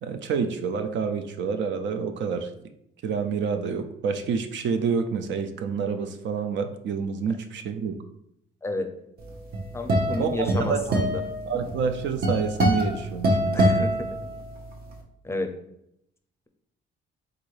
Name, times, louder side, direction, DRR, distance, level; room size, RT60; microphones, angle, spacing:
voice 1, 0.0-2.5 3.0-8.0 10.2-10.9 11.5-13.9, right 6 dB, 65° right, 7 dB, 0.5 m, -28 dB
sound 1, 9.3-14.7, right 1 dB, 50° right, 0.9 m, -25 dB
voice 2, 9.7-11.2 13.5-14.1 15.2-15.5, left 2 dB, 15° left, 5 dB, 0.6 m, -30 dB
3.8 x 2.6 x 4.7 m, 0.76 s
cardioid pair, 90°, 20 cm